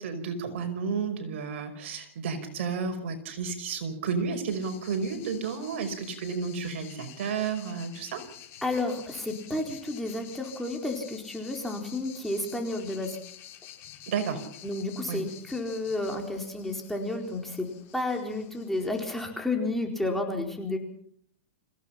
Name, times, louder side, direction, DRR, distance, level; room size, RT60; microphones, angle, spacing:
voice 1, 0.0-8.2 14.1-14.5 15.1-15.2, right 5 dB, 65° right, 7 dB, 5.3 m, -32 dB
sound 1, 4.5-19.2, left 11 dB, 40° left, 5.8 m, -49 dB
voice 2, 8.6-13.2 14.6-20.8, left 2 dB, 5° left, 1 dB, 4.3 m, -31 dB
26.5 x 16.5 x 5.9 m, 0.65 s
hypercardioid pair, 125°, 7 cm